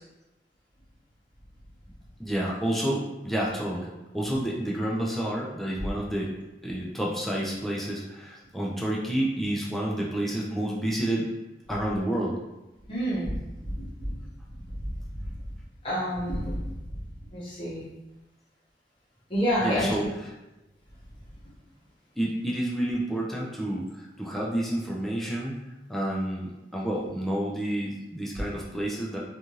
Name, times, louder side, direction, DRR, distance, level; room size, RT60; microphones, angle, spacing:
voice 1, 2.2-6.4 6.6-11.3 11.7-12.4 19.6-20.3 22.2-25.6 25.9-29.2, right 1 dB, ahead, -4 dB, 0.4 m, -29 dB
voice 2, 12.9-13.3 13.8-13.9 15.8-16.5 17.3-17.8 19.3-19.9, equal, 30° left, -8 dB, 0.9 m, -27 dB
2.5 x 2.4 x 2.9 m, 0.98 s
head